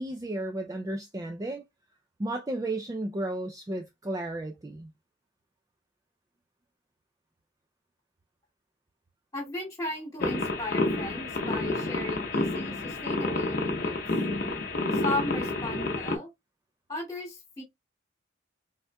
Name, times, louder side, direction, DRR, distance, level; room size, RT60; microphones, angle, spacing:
voice 1, 0.0-1.6 2.2-4.9, right 1 dB, 20° right, 0.3 m, -33 dB
voice 2, 9.3-13.9 14.9-16.3 16.9-17.6, left 2 dB, 15° left, 2.3 m, -36 dB
sound 1, 10.2-16.2, left 2 dB, 45° left, 0.7 m, -29 dB
5.3 x 3.5 x 2.2 m
head